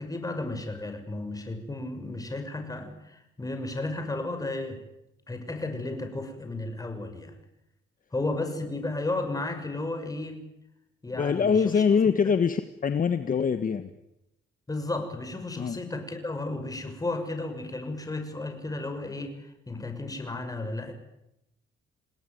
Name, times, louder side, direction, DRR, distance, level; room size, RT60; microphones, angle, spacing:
voice 1, 0.0-4.8 5.3-7.4 8.1-10.4 11.0-11.8 14.7-20.9, left 2 dB, 20° left, 7 dB, 6.3 m, -33 dB
voice 2, 11.1-13.9 15.6-15.8, left 6 dB, 45° left, 10 dB, 1.5 m, -24 dB
29.0 x 19.0 x 9.4 m, 0.86 s
cardioid pair, 90°, 20 cm